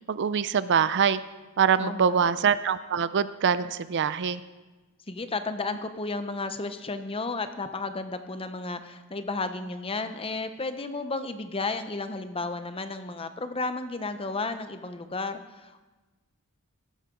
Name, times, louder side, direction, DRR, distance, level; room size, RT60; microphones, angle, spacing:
voice 1, 0.1-1.2 1.6-4.4, right 7 dB, 55° right, 14 dB, 0.5 m, -24 dB
voice 2, 1.8-2.2 5.1-15.8, left 3 dB, 25° left, 9 dB, 0.8 m, -33 dB
16.5 x 13.0 x 3.8 m, 1.2 s
head